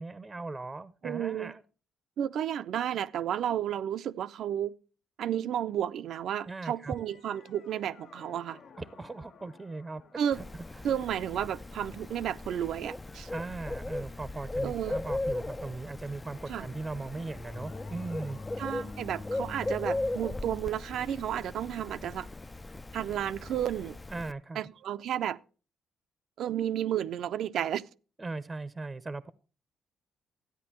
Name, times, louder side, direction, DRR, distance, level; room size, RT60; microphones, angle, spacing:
voice 1, 0.0-1.6 6.5-6.9 8.8-10.0 10.4-10.6 13.3-18.4 24.1-24.7 28.2-29.3, right 3 dB, 20° right, 0.6 m, -39 dB
voice 2, 1.0-1.5 2.2-4.7 5.2-8.6 10.2-10.4 10.8-13.3 14.6-15.0 16.5-16.7 18.6-22.3 22.9-24.0 24.6-25.4 26.4-27.8, right 10 dB, 70° right, 0.5 m, -32 dB
sound 1, 6.7-13.9 15.8-23.6, left 6 dB, 65° left, 1.1 m, -58 dB
Bird, 10.3-24.3, left 2 dB, 20° left, 0.4 m, -38 dB
13.5 x 9.5 x 3.0 m
cardioid pair, 90°, 0 cm